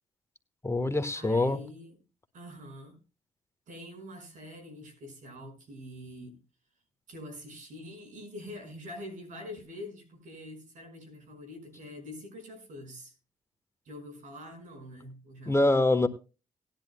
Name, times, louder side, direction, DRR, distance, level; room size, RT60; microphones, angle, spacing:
voice 1, 0.6-1.6 15.5-16.1, left 2 dB, 20° left, 10 dB, 1.3 m, -24 dB
voice 2, 1.2-2.0 2.3-3.0 3.7-6.4 7.1-13.1 13.9-15.6, left 1 dB, 70° right, 5 dB, 5.5 m, -45 dB
18.5 x 10.5 x 2.2 m, 0.32 s
supercardioid pair, 55°, 14 cm